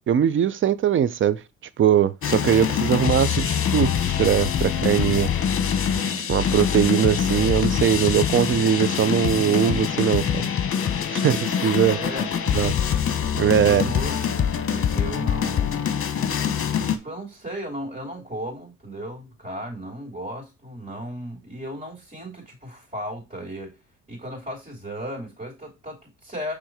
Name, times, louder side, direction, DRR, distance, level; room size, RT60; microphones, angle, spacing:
voice 1, 0.1-1.4 1.8-5.3 6.3-10.5 11.1-12.0 12.5-12.7 13.3-13.9, right 9 dB, 40° right, 0.6 m, -21 dB
sound 1, 2.2-17.0, left 8 dB, 45° left, 1.0 m, -24 dB
voice 2, 5.9-6.3 12.0-12.3 13.4-15.9 16.9-23.8 24.1-26.5, equal, 25° right, 3.6 m, -35 dB
6.3 x 3.8 x 4.8 m
cardioid pair, 90°, 30 cm